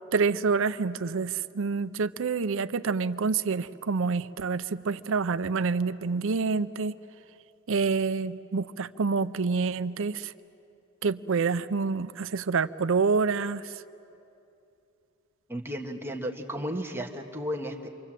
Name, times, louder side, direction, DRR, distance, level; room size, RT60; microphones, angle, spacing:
voice 1, 0.1-6.9 7.7-10.3 11.0-13.7, right 4 dB, 65° right, 13 dB, 0.6 m, -27 dB
voice 2, 15.5-17.9, equal, 10° right, 1 dB, 1.5 m, -34 dB
29.0 x 25.0 x 7.5 m, 2.7 s
head